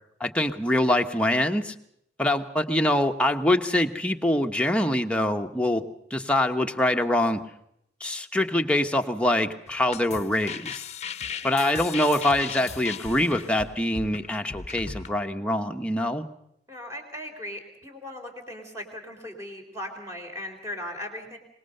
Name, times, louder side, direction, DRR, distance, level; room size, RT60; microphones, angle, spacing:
voice 1, 0.2-1.7 2.2-5.8 6.1-7.4 8.0-10.8 11.4-16.2, left 1 dB, 5° left, 4 dB, 1.1 m, -24 dB
sound 1, 9.7-15.1, left 6 dB, 40° left, 0.8 m, -37 dB
voice 2, 11.4-11.8 16.7-21.4, left 1 dB, 15° right, 3 dB, 4.0 m, -38 dB
24.0 x 20.5 x 6.6 m, 0.75 s
head